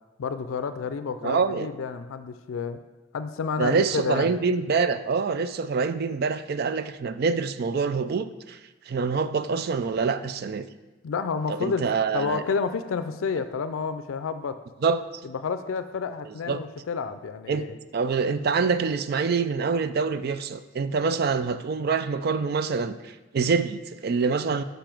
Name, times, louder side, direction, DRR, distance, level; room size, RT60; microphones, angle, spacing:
voice 1, 0.2-2.8 3.1-4.3 11.0-11.8 12.1-14.6 15.2-17.7, left 5 dB, 85° left, 11 dB, 0.4 m, -30 dB
voice 2, 1.2-1.7 3.6-8.6 8.9-10.7 11.5-12.4 14.8-15.0 16.5-16.6 17.5-17.6 17.9-24.6, right 5 dB, 50° right, 12 dB, 0.4 m, -25 dB
6.9 x 5.1 x 5.9 m, 1.2 s
head